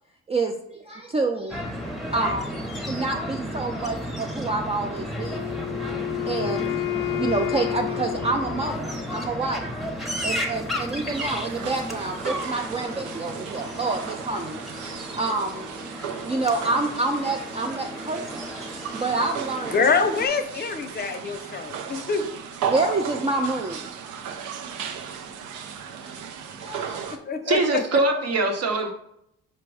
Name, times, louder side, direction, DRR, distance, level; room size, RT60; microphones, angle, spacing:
voice 1, 0.3-1.6 2.1-5.5 5.9-6.0 6.3-9.7 10.2-14.6 15.1-15.7 16.2-19.7 22.7-23.9 26.0-26.3 26.6-27.2, right 3 dB, 20° right, 3 dB, 0.4 m, -28 dB
sound 1, 1.5-20.3, equal, ahead, 0.8 m, -33 dB
Wind instrument woodwind instrument, 5.2-9.2, left 18 dB, 85° left, 0.6 m, -30 dB
sound 2, 11.1-27.2, right 7 dB, 80° right, 0.6 m, -35 dB
voice 2, 19.7-22.2 27.1-27.8, left 5 dB, 30° left, 7 dB, 0.6 m, -25 dB
voice 3, 27.5-28.9, right 2 dB, 55° right, 4 dB, 0.9 m, -22 dB
5.1 x 2.2 x 4.7 m, 0.75 s
cardioid pair, 90°, 30 cm